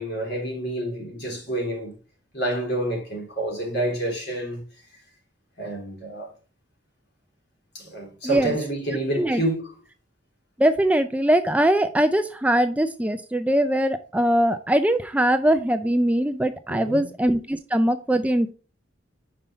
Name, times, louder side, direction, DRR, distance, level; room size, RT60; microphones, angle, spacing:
voice 1, 0.0-1.9 2.3-4.6 5.6-6.3 7.7-9.6 16.7-17.1, right 1 dB, 60° left, 3.5 m, -28 dB
voice 2, 8.2-8.6 9.2-9.4 10.6-18.5, right 1 dB, 10° right, 0.3 m, -21 dB
5.5 x 5.4 x 4.4 m
head